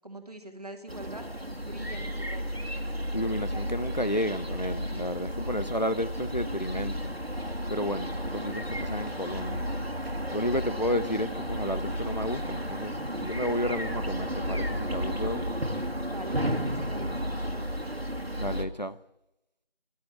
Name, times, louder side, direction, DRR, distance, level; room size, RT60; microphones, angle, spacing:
voice 1, 0.0-2.6 5.3-5.4 10.4-10.7 16.1-18.3, right 1 dB, 40° right, 1.7 m, -44 dB
sound 1, 0.9-18.7, equal, 85° right, 1.9 m, -33 dB
voice 2, 3.1-7.0 7.7-9.7 10.0-12.9 13.2-15.5 18.4-19.0, equal, 45° left, 0.5 m, -32 dB
14.5 x 11.5 x 5.8 m
figure-of-eight pair, 175°, 30 cm